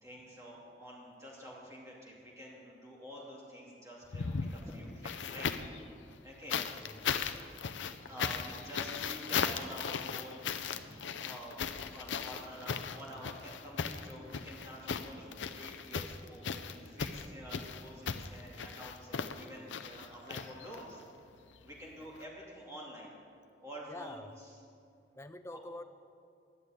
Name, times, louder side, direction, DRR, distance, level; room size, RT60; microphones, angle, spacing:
voice 1, 0.0-5.5 6.2-6.6 7.6-11.6 11.8-21.0 21.6-23.1 23.6-24.2 25.5-25.6, equal, 15° right, -5 dB, 2.7 m, -48 dB
sound 1, 4.0-5.8 6.5-21.0 22.1-22.2, left 6 dB, 85° left, 0.6 m, -37 dB
voice 2, 6.5-7.0 22.0-22.1 23.9-24.4 25.2-25.8, left 2 dB, 15° left, 9 dB, 0.4 m, -46 dB
11.0 x 7.9 x 8.8 m, 2.4 s
head